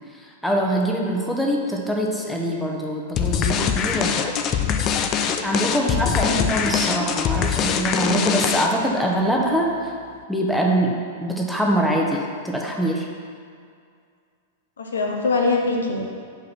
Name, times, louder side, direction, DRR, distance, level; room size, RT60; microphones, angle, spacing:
voice 1, 0.2-4.3 5.4-9.7 10.3-13.1, right 1 dB, ahead, -2 dB, 0.9 m, -23 dB
sound 1, 3.2-8.9, left 7 dB, 35° left, 0.5 m, -23 dB
voice 2, 14.8-16.0, left 3 dB, 85° left, 1 dB, 0.8 m, -23 dB
5.4 x 4.0 x 5.9 m, 2.3 s
hypercardioid pair, 105°, 0 cm